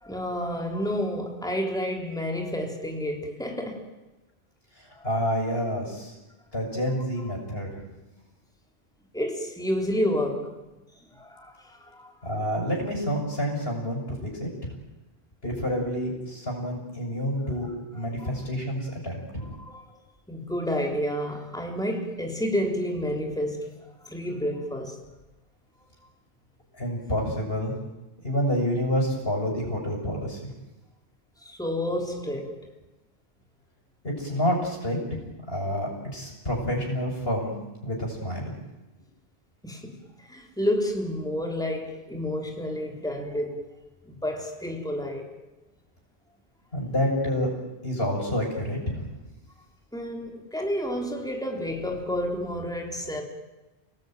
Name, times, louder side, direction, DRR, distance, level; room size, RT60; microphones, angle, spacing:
voice 1, 0.0-3.9 4.9-5.1 7.0-7.1 9.1-10.6 11.1-12.1 18.0-18.3 19.4-19.8 20.3-23.7 24.0-25.0 31.4-32.7 39.6-43.6 44.0-45.3 49.9-53.2, equal, 5° left, 3.6 m, -30 dB
voice 2, 5.0-6.1 6.5-7.7 12.2-14.5 15.4-17.7 17.9-19.5 26.8-27.7 28.2-30.4 34.0-35.2 35.5-37.5 37.8-38.5 46.7-47.5 47.8-49.0, equal, 65° left, 6.9 m, -28 dB
29.5 x 18.5 x 9.3 m
omnidirectional pair, 1.1 m